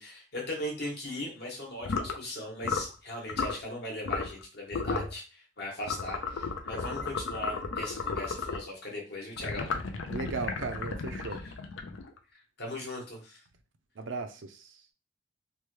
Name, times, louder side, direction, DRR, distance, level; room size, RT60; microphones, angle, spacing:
voice 1, 0.0-9.7 11.3-11.4 12.3-13.4, left 1 dB, 60° left, 1.1 m, -39 dB
sound 1, 1.8-2.2 2.6-2.9 3.3-3.6 4.0-4.4 4.7-5.1 5.8-8.7 9.4-12.2, left 4 dB, 90° left, 0.5 m, -34 dB
voice 2, 10.1-11.4 14.0-14.8, right 4 dB, 75° right, 0.5 m, -37 dB
3.1 x 2.2 x 3.1 m
head